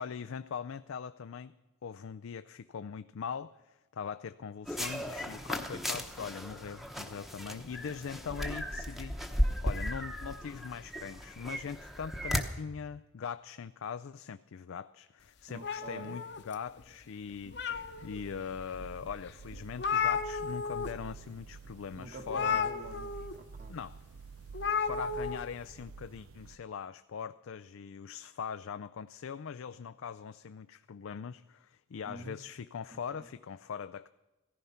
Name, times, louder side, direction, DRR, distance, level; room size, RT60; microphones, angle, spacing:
voice 1, 0.0-1.5 1.8-22.7 23.7-24.0 24.8-34.1, left 6 dB, 85° left, 0.4 m, -41 dB
sound 1, 4.7-12.4, equal, ahead, 0.9 m, -36 dB
voice 2, 15.5-16.2 21.9-23.8 32.0-32.4 32.9-33.0, right 1 dB, 40° right, 1.3 m, -47 dB
sound 2, 15.6-16.8 17.3-18.2 18.8-18.9 19.3-19.4 19.5-20.9 21.2-21.4 22.3-23.3 24.5-25.4, left 6 dB, 55° left, 0.9 m, -33 dB
sound 3, 17.7-26.6, right 5 dB, 90° right, 0.5 m, -49 dB
16.5 x 14.5 x 5.7 m
head